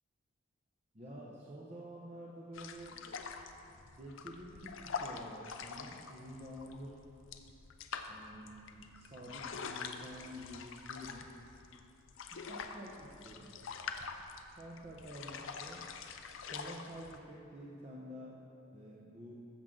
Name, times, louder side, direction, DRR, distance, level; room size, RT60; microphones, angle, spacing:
voice 1, 0.9-3.0 4.0-7.0 8.1-11.3 12.3-13.5 14.5-15.8 16.4-18.4 18.7-19.3, equal, 30° right, -5 dB, 0.9 m, -49 dB
sound 1, 2.5-17.2, left 5 dB, 60° left, 0.6 m, -45 dB
13.5 x 7.5 x 3.8 m, 2.7 s
head